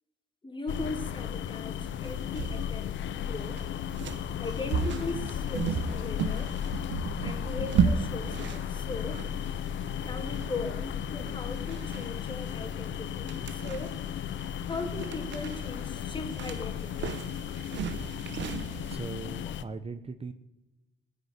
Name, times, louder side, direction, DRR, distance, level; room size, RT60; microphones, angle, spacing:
voice 1, 0.4-3.6 4.4-6.6 7.2-9.2 10.0-13.9 14.6-17.1, left 3 dB, 25° left, 4 dB, 2.9 m, -39 dB
sound 1, 0.7-19.6, left 9 dB, 70° left, 0.7 m, -35 dB
sound 2, 1.8-18.9, right 6 dB, 65° right, 1.1 m, -35 dB
voice 2, 18.8-20.3, right 4 dB, 30° right, 10 dB, 0.9 m, -39 dB
17.5 x 6.9 x 9.6 m, 1.0 s
cardioid pair, 90°, 20 cm